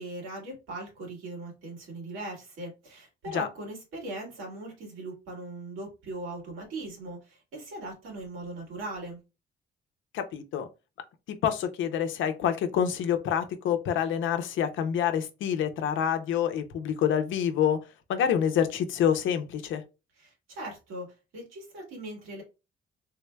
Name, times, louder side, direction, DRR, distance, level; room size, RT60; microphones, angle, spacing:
voice 1, 0.0-9.2 20.2-22.4, right 2 dB, 90° right, 2.0 m, -39 dB
voice 2, 10.1-10.7 11.3-17.8 18.1-19.8, left 8 dB, 80° left, 0.6 m, -27 dB
3.4 x 3.3 x 2.2 m
cardioid pair, 90°, 20 cm